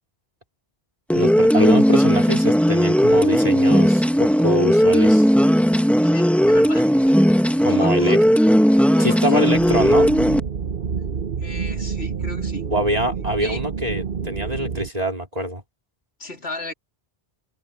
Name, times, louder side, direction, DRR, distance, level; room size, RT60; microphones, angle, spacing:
sound 1, 1.1-10.4, equal, ahead, 1.2 m, -16 dB
voice 1, 1.1-5.3 7.6-8.2 9.0-10.1 12.7-15.6, right 1 dB, 40° right, 3.9 m, -24 dB
voice 2, 6.0-6.9 7.7-8.2 8.9-9.4 11.4-12.7 13.4-13.6 16.2-16.7, left 2 dB, 85° left, 3.2 m, -35 dB
sound 2, 9.5-14.9, right 6 dB, 60° right, 1.2 m, -28 dB
omnidirectional pair, 1.0 m